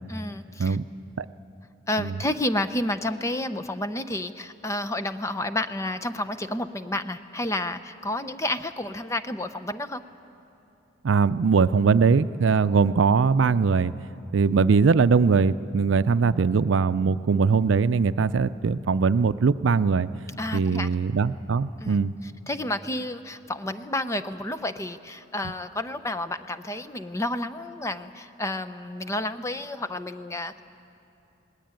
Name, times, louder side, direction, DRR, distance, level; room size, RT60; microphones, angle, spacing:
voice 1, 0.1-0.8 1.9-10.0 20.4-20.9 21.8-22.0 22.5-30.6, left 1 dB, 15° left, 11 dB, 0.6 m, -30 dB
voice 2, 11.0-13.9 14.3-20.1 20.5-22.1 25.4-25.5, right 5 dB, 80° right, 14 dB, 0.5 m, -21 dB
19.5 x 19.5 x 9.0 m, 2.8 s
head